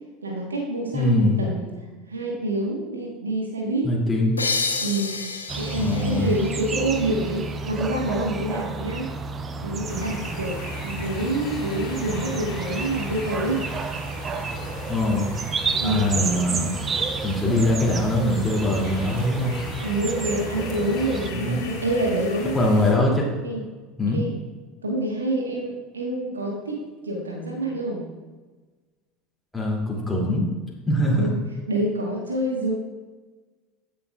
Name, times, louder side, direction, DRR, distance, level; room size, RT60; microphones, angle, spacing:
voice 1, 0.2-1.8 2.1-3.9 4.8-5.2 5.6-9.1 9.6-10.6 10.8-13.6 15.8-16.2 19.8-22.9 23.4-23.6 24.1-24.3 24.8-28.0 31.0-31.3 31.7-32.7, right 1 dB, 75° right, -1 dB, 1.3 m, -27 dB
voice 2, 0.9-1.4 3.8-4.4 5.8-6.3 14.9-15.3 15.8-16.7 17.2-19.5 21.3-21.6 22.5-23.3 24.0-24.2 29.5-30.4 30.9-31.3, left 1 dB, 5° left, -4 dB, 2.5 m, -22 dB
sound 1, 4.4-7.8, left 4 dB, 80° left, 0.6 m, -30 dB
sound 2, 5.5-21.3, right 4 dB, 25° right, 0.6 m, -31 dB
sound 3, 9.8-22.9, left 1 dB, 55° left, 2.1 m, -38 dB
15.0 x 7.0 x 2.3 m, 1.3 s
figure-of-eight pair, 70°, 0 cm